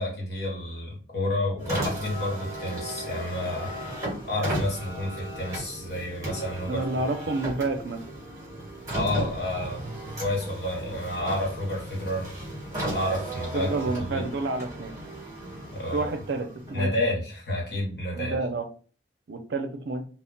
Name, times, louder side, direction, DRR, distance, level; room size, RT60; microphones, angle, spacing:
voice 1, 0.0-3.7 4.2-6.8 8.9-12.3 12.9-13.7 14.0-14.3 15.7-16.1 16.7-18.4, left 1 dB, 60° left, -2 dB, 1.1 m, -30 dB
Car, 1.6-17.0, right 1 dB, 20° right, 1.1 m, -35 dB
voice 2, 6.7-8.0 13.5-15.0 15.9-16.9 18.1-18.7 19.3-20.0, right 3 dB, 70° right, 6 dB, 0.4 m, -29 dB
2.1 x 2.0 x 3.7 m, 0.40 s
head